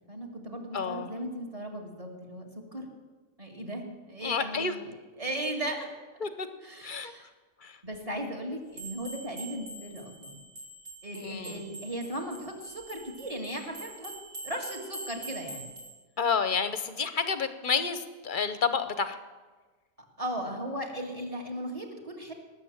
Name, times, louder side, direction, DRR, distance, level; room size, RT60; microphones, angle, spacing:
voice 1, 0.1-2.9 3.4-4.9 5.2-5.9 6.6-7.3 7.8-10.4 11.0-14.1 14.4-15.7 20.2-22.3, right 1 dB, 25° right, 0 dB, 2.1 m, -37 dB
voice 2, 0.7-1.1 4.2-4.8 6.2-6.5 6.8-7.1 7.6-7.8 11.1-11.6 16.2-19.2, left 5 dB, 40° left, 10 dB, 0.9 m, -30 dB
sound 1, 8.7-16.0, right 2 dB, 60° right, 2.8 m, -44 dB
19.0 x 7.7 x 7.2 m, 1.3 s
omnidirectional pair, 1.5 m